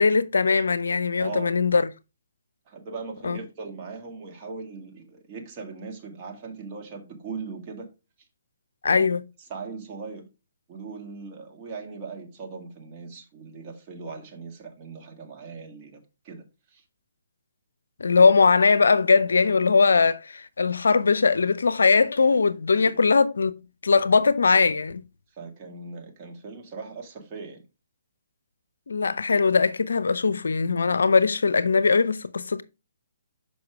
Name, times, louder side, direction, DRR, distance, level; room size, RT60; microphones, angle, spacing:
voice 1, 0.0-1.9 3.2-3.4 8.8-9.2 18.0-23.5 23.8-25.0 28.9-32.6, left 4 dB, 75° left, 0.5 m, -20 dB
voice 2, 1.2-1.6 2.7-7.9 8.9-9.1 9.5-10.3 10.7-16.8 22.8-23.0 25.3-27.6, right 4 dB, 30° right, 1.9 m, -39 dB
6.4 x 5.3 x 3.4 m
figure-of-eight pair, 140°, 0 cm